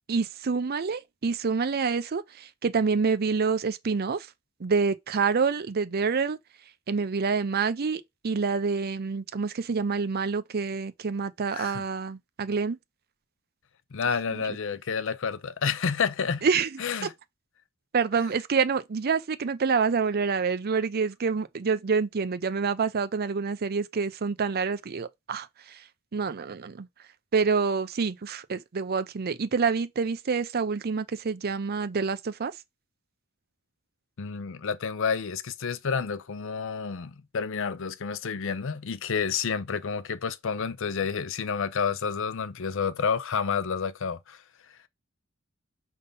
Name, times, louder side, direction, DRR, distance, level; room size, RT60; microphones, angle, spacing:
voice 1, 0.1-4.3 4.6-6.4 6.9-12.8 16.4-16.8 17.9-25.8 26.1-26.9 27.3-32.5, right 5 dB, 50° right, 0.5 m, -27 dB
voice 2, 11.5-11.8 13.9-16.5 16.8-17.1 34.2-44.4, left 6 dB, 65° left, 0.6 m, -29 dB
5.3 x 3.6 x 5.3 m
head